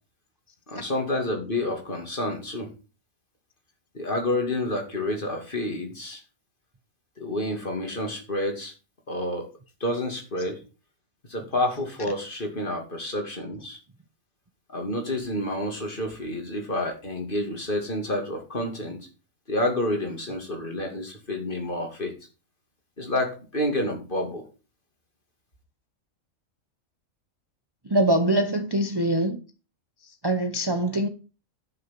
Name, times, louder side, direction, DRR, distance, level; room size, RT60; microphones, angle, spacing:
voice 1, 0.7-2.7 3.9-6.2 7.2-8.7 9.1-9.5 9.8-10.6 11.3-13.8 14.7-19.0 19.5-22.1 23.0-24.4, left 1 dB, 40° left, 2.7 m, -29 dB
voice 2, 27.8-29.4 30.0-31.1, right 1 dB, 20° right, 0.8 m, -24 dB
10.5 x 6.4 x 5.9 m
omnidirectional pair, 1.4 m